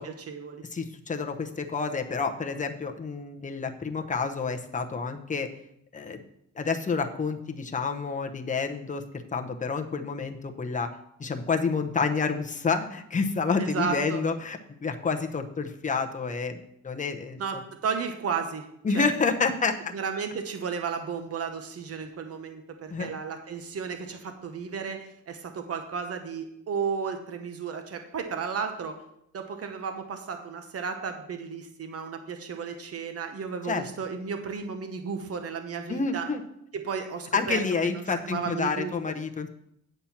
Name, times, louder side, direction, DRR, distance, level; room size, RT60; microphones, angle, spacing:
voice 1, 0.0-0.6 13.6-14.2 17.4-19.1 19.9-29.0 29.3-36.3 36.7-39.1, right 6 dB, 50° right, 6 dB, 1.0 m, -34 dB
voice 2, 0.7-5.5 5.9-6.2 6.6-9.0 9.3-10.9 11.2-17.4 18.8-19.7 22.9-23.1 33.7-33.8 35.9-36.4 37.3-39.5, left 4 dB, 25° left, 4 dB, 0.7 m, -29 dB
9.1 x 4.3 x 7.1 m, 0.75 s
wide cardioid pair, 150°, 30 cm